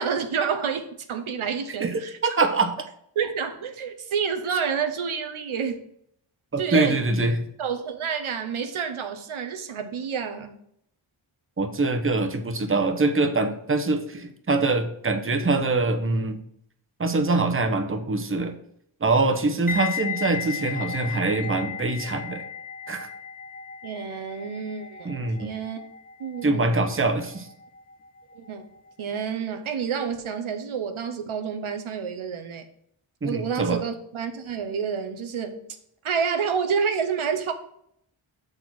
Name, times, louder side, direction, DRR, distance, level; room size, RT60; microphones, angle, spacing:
voice 1, 0.0-2.5 3.2-5.8 6.6-7.0 7.6-10.6 23.8-25.8 26.2-26.7 28.3-28.6 29.0-32.6 33.2-35.7 36.0-37.5, right 6 dB, 80° right, 7 dB, 0.8 m, -29 dB
voice 2, 1.8-2.7 6.5-7.4 11.6-16.4 17.0-18.5 19.0-22.4 22.9-23.1 25.0-25.5 26.4-27.5 33.2-33.8, right 3 dB, 25° right, 6 dB, 0.9 m, -24 dB
sound 1, 19.7-28.6 28.9-29.2, left 7 dB, 20° left, 0.7 m, -36 dB
6.5 x 4.4 x 5.9 m, 0.71 s
wide cardioid pair, 65°, 49 cm